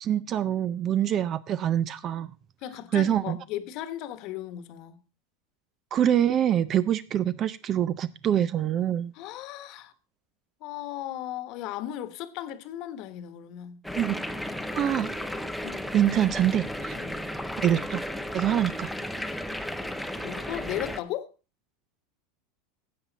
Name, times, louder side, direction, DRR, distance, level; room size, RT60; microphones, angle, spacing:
voice 1, 0.0-2.3 2.9-3.4 5.9-9.1 14.0-14.2 14.7-15.1 15.9-16.9 17.6-18.0 18.3-18.9, right 10 dB, 35° right, 0.4 m, -25 dB
voice 2, 2.6-5.0 9.1-9.9 10.6-13.8 15.6-15.8 16.9-17.2 20.2-21.3, left 12 dB, 55° left, 1.2 m, -36 dB
sound 1, 13.8-21.0, left 1 dB, ahead, 0.8 m, -34 dB
13.0 x 8.2 x 4.0 m
supercardioid pair, 125°, 0 cm